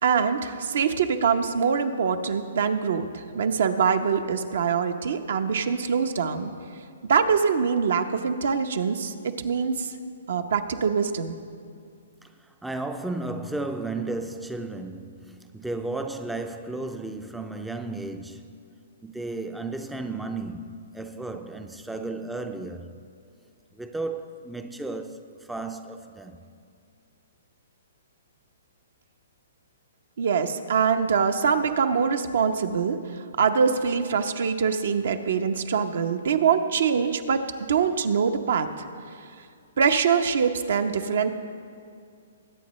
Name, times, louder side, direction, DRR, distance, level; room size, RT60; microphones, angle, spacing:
voice 1, 0.0-6.5 7.1-9.9 10.3-11.3 30.2-37.4 37.7-38.7 39.8-41.3, right 6 dB, 70° right, 0.8 m, -24 dB
voice 2, 12.2-18.6 19.0-23.0 23.7-26.4, right 2 dB, 5° right, 0.4 m, -34 dB
21.5 x 8.7 x 3.1 m
hypercardioid pair, 145°, 0 cm